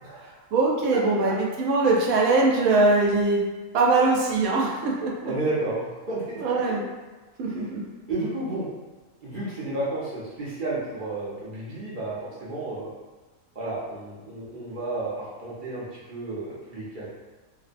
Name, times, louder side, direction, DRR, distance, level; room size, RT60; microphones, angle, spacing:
voice 1, 0.0-0.3 5.2-6.8 7.4-7.7 8.1-8.7 9.2-12.2 12.4-12.9 13.5-17.1, right 2 dB, 55° right, -8 dB, 0.5 m, -32 dB
voice 2, 0.5-3.4 3.7-5.3 6.4-6.8 7.4-7.8, right 3 dB, 80° right, -2 dB, 1.0 m, -22 dB
2.9 x 2.0 x 2.5 m, 1.2 s
omnidirectional pair, 1.5 m